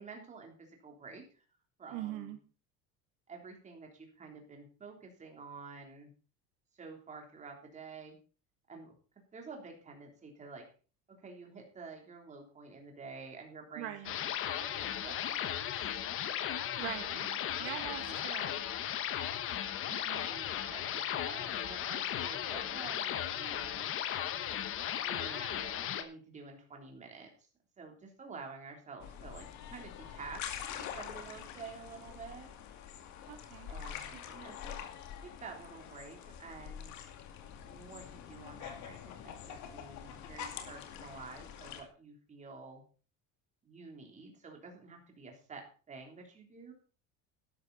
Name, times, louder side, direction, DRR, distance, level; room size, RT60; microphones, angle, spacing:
voice 1, 0.0-1.4 1.8-2.3 3.3-6.1 6.7-8.2 8.7-8.9 9.3-10.7 11.2-13.9 14.4-16.1 18.0-18.2 20.2-23.9 25.0-27.5 27.8-32.5 33.7-34.7 35.2-36.9 37.6-42.8 43.6-46.7, right 4 dB, 20° right, 2 dB, 3.3 m, -50 dB
voice 2, 1.9-2.4 13.8-14.2 16.8-18.5 19.9-20.3 33.3-33.7 34.1-34.2, right 13 dB, 85° right, 6 dB, 2.2 m, -43 dB
sound 1, 14.0-26.0, left 10 dB, 40° left, 1.2 m, -36 dB
sound 2, 29.0-41.8, left 9 dB, 55° left, 2.4 m, -45 dB
12.5 x 11.5 x 4.1 m, 0.37 s
cardioid pair, 165°, 33 cm